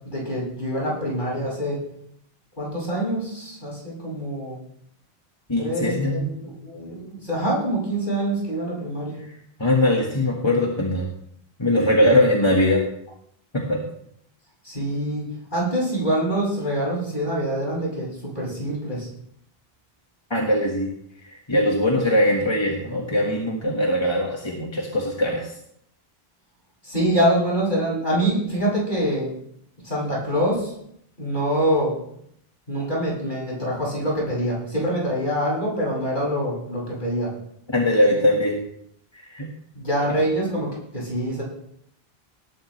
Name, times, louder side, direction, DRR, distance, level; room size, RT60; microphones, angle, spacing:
voice 1, 0.0-1.8 2.6-4.6 5.6-9.1 14.6-19.1 26.8-29.3 29.8-30.7 31.2-32.0 32.7-37.3 39.8-41.4, right 1 dB, 50° left, -5 dB, 7.1 m, -25 dB
voice 2, 5.5-6.3 9.6-11.1 11.6-12.8 13.5-13.8 20.3-20.9 21.3-25.5 37.7-38.6 39.1-39.5 40.1-40.2, left 1 dB, 25° left, -1 dB, 1.7 m, -21 dB
18.5 x 12.0 x 3.3 m, 0.71 s
omnidirectional pair, 1.1 m